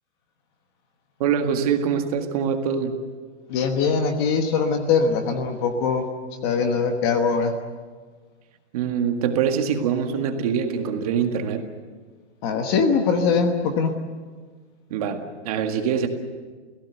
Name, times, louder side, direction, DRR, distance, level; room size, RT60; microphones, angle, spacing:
voice 1, 1.2-3.0 8.7-11.6 14.9-16.1, right 7 dB, 30° right, 5 dB, 1.8 m, -24 dB
voice 2, 3.5-6.1 6.4-7.5 12.4-13.9, left 5 dB, 25° left, 5 dB, 1.2 m, -22 dB
29.5 x 17.0 x 8.0 m, 1.5 s
hypercardioid pair, 180°, 34 cm